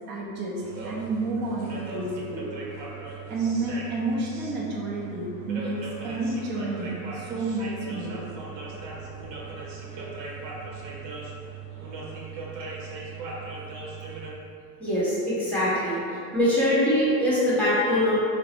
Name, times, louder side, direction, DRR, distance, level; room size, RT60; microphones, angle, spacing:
voice 1, 0.1-2.5 3.3-8.3, right 2 dB, 25° right, -4 dB, 0.5 m, -30 dB
sound 1, 0.6-14.3, right 4 dB, 90° right, 0.8 m, -38 dB
voice 2, 14.8-16.0 16.3-18.2, left 1 dB, 5° left, -10 dB, 1.0 m, -23 dB
3.7 x 2.1 x 2.9 m, 2.4 s
supercardioid pair, 120°, 48 cm